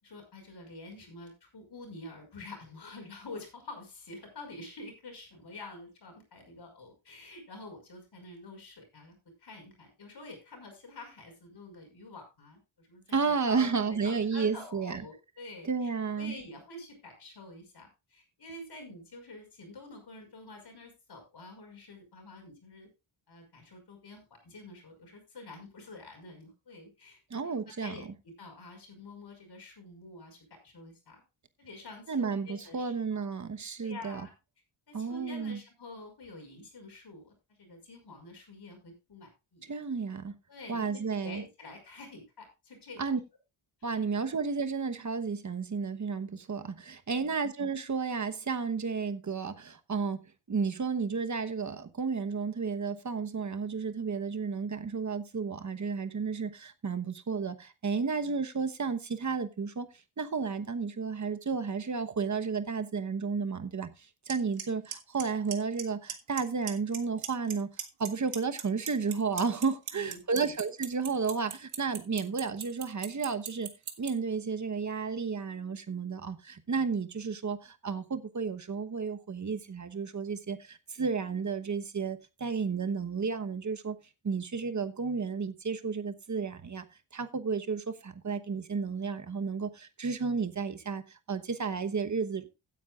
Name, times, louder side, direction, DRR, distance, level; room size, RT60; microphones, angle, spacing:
voice 1, 0.0-15.9 16.2-22.9 23.3-31.2 31.6-32.8 33.1-33.3 33.8-34.3 34.9-39.7 40.5-43.1 43.8-44.0 47.1-47.3 69.9-70.5, left 2 dB, 50° left, 5.7 m, -48 dB
voice 2, 13.1-15.0 15.6-16.3 27.3-27.9 32.1-34.3 34.9-35.6 39.7-40.4 40.7-41.4 43.0-43.2 43.8-50.2 50.5-59.9 60.2-67.7 68.0-73.7 74.0-84.0 84.2-86.8 87.1-92.6, right 5 dB, 35° right, 1.1 m, -32 dB
Clock, 64.3-64.4 64.6-64.9 65.2-65.8 66.1-66.4 66.7-67.5 67.8-74.1, right 9 dB, 80° right, 1.8 m, -36 dB
16.0 x 9.4 x 2.4 m
wide cardioid pair, 150°, 49 cm